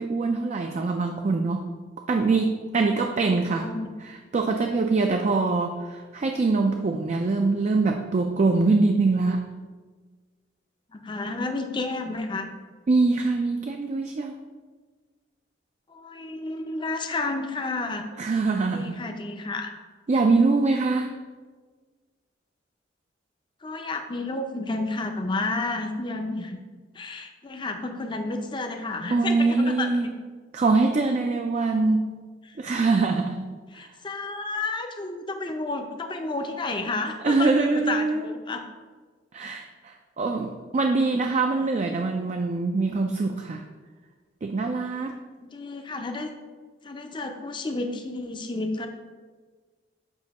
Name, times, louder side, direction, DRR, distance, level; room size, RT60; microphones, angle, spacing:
voice 1, 0.0-1.7 2.1-3.7 4.0-9.4 12.9-14.3 18.2-19.0 20.1-21.2 29.1-30.1 30.5-32.1 32.6-33.5 37.2-38.3 39.3-43.6 44.4-45.2, right 3 dB, 35° right, 4 dB, 0.4 m, -23 dB
voice 2, 3.5-3.9 10.9-12.5 15.9-18.0 18.7-19.7 23.6-26.6 26.9-30.2 32.5-32.6 33.7-38.6 45.4-46.3 46.8-48.9, left 3 dB, 25° left, 5 dB, 0.5 m, -31 dB
8.1 x 2.7 x 5.2 m, 1.4 s
head